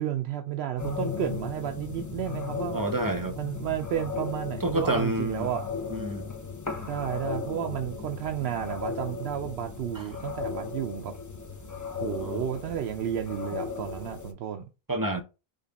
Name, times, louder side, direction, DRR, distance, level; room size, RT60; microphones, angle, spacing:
voice 1, 0.0-2.8 3.4-5.7 6.9-11.1 12.0-14.7, right 10 dB, 80° right, 0.8 m, -32 dB
sound 1, 0.8-14.3, left 5 dB, 25° left, 0.5 m, -36 dB
voice 2, 2.7-3.4 4.6-5.5 5.9-6.3 9.9-10.0 12.0-12.4 14.9-15.2, right 1 dB, 25° right, 0.6 m, -29 dB
5.2 x 2.5 x 3.9 m
omnidirectional pair, 1.0 m